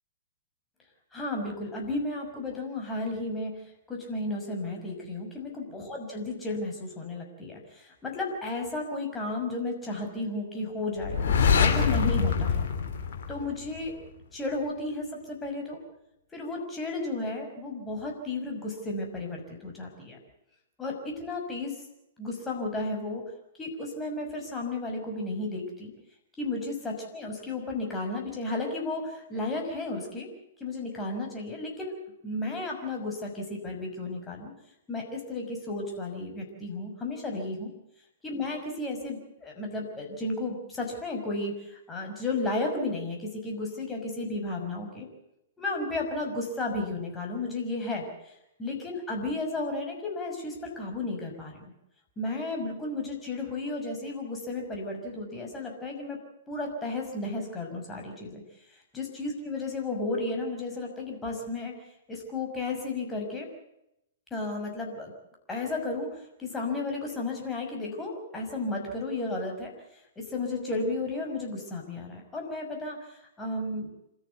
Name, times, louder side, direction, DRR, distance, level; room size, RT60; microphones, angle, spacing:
voice 1, 1.1-11.2 11.6-12.6 13.3-14.0 14.3-15.8 16.3-20.2 20.8-21.8 22.2-23.2 23.6-25.9 26.4-30.3 30.6-31.9 32.2-34.5 34.9-37.7 38.2-45.1 45.6-51.6 52.2-56.2 56.5-58.4 58.7-61.7 62.1-63.5 64.3-65.1 65.5-73.9, left 2 dB, 15° left, 0 dB, 6.0 m, -33 dB
sound 1, 11.0-13.9, left 6 dB, 55° left, 3.4 m, -24 dB
27.0 x 14.0 x 8.2 m, 0.83 s
figure-of-eight pair, 110°, 0 cm